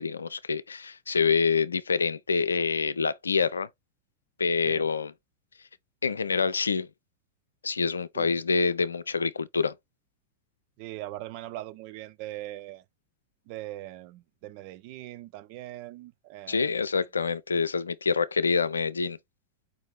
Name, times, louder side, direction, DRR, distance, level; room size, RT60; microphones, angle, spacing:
voice 1, 0.0-3.7 4.4-5.1 6.0-6.9 7.6-9.7 16.5-19.2, left 5 dB, 75° left, 0.3 m, -26 dB
voice 2, 10.8-12.8 13.5-16.7, right 15 dB, 45° right, 0.4 m, -41 dB
4.7 x 2.6 x 3.1 m
figure-of-eight pair, 90°, 0 cm